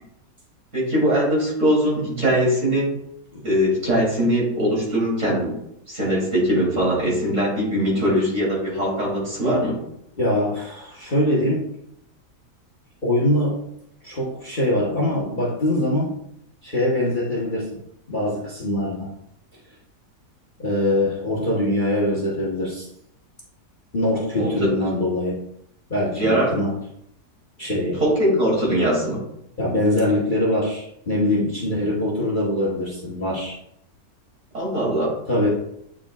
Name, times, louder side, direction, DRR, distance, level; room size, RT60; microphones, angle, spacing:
voice 1, 0.7-2.9 3.4-5.5 5.9-9.8 24.4-24.5 26.1-26.5 28.0-29.2 34.5-35.1, equal, 50° right, -4 dB, 3.0 m, -21 dB
voice 2, 10.2-11.7 13.0-13.6 14.0-16.2 16.6-17.7 18.1-19.1 20.6-22.9 23.9-25.4 25.9-26.7 27.6-28.0 29.6-33.6 35.3-35.5, left 1 dB, 35° left, -5 dB, 1.2 m, -23 dB
8.5 x 5.1 x 2.4 m, 0.75 s
omnidirectional pair, 1.7 m